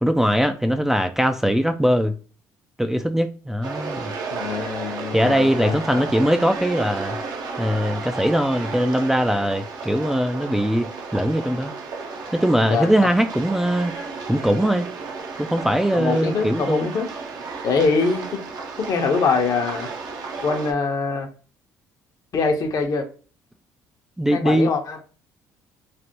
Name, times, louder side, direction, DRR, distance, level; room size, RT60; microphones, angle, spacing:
voice 1, 0.0-2.1 2.8-4.1 5.1-7.2 7.6-11.7 12.3-13.9 14.3-14.9 15.4-16.9 24.2-24.7, equal, 5° right, 0.3 m, -21 dB
sound 1, 3.6-20.7, right 4 dB, 60° right, 0.7 m, -33 dB
voice 2, 4.3-6.1 12.7-12.9 15.9-17.1 17.6-18.4 18.8-19.9 20.4-21.3 22.3-23.1 24.3-25.0, left 4 dB, 55° left, 0.7 m, -23 dB
3.3 x 2.1 x 2.8 m
hypercardioid pair, 60°, 8 cm